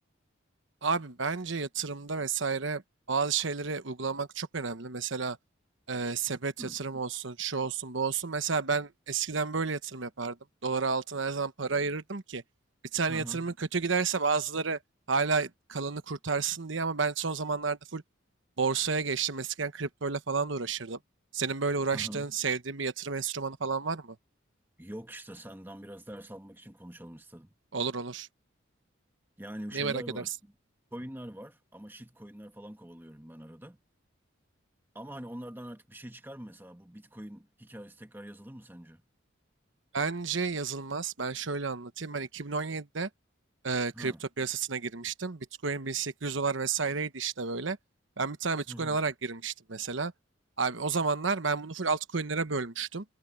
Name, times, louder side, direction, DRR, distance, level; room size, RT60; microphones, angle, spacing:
voice 1, 0.8-2.8 3.1-5.4 5.9-10.4 10.6-12.4 12.9-14.8 15.1-18.0 18.6-21.0 21.3-24.1 27.7-28.3 29.7-30.2 39.9-43.1 43.6-47.8 48.2-50.1 50.6-53.0, right 4 dB, 70° right, 1.1 m, -31 dB
voice 2, 13.1-13.5 21.9-22.3 24.8-27.5 29.4-30.5 30.9-33.8 34.9-39.0 43.9-44.2 48.7-49.0, equal, 10° right, 1.4 m, -44 dB
head